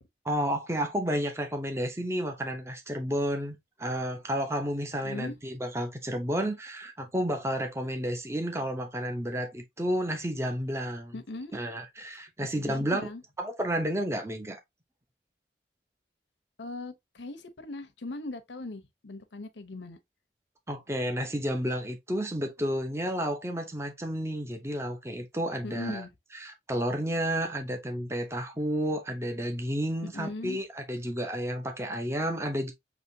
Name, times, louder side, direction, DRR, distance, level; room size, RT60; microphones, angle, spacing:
voice 1, 0.2-11.2 11.5-13.0 13.4-14.6 20.7-26.0 26.3-32.7, equal, 15° right, 0.8 m, -31 dB
voice 2, 4.9-5.4 11.1-11.5 12.5-13.2 16.6-20.0 25.6-26.1 30.1-30.6, left 2 dB, 90° left, 0.8 m, -39 dB
6.3 x 3.1 x 2.7 m
head